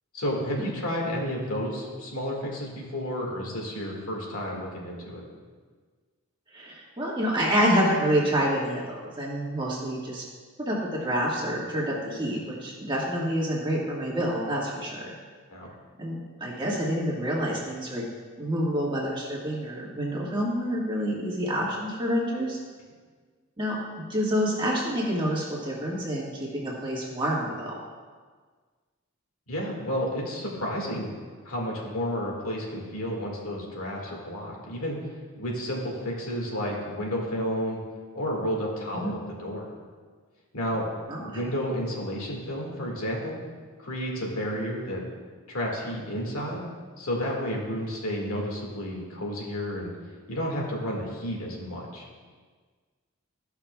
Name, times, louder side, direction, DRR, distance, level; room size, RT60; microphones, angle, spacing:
voice 1, 0.1-5.2 15.5-15.7 29.5-31.1 31.4-35.0 35.4-37.8 38.2-39.7 40.5-40.9 41.2-43.4 43.8-45.0 45.5-46.7 47.0-49.9 50.3-52.1, equal, 85° left, -1 dB, 1.9 m, -31 dB
voice 2, 6.5-10.2 10.6-15.1 16.0-18.0 18.4-22.6 23.6-23.8 24.1-27.8 38.9-39.1 41.1-41.4, equal, 20° right, -4 dB, 1.5 m, -28 dB
14.0 x 5.8 x 2.3 m, 1.5 s
head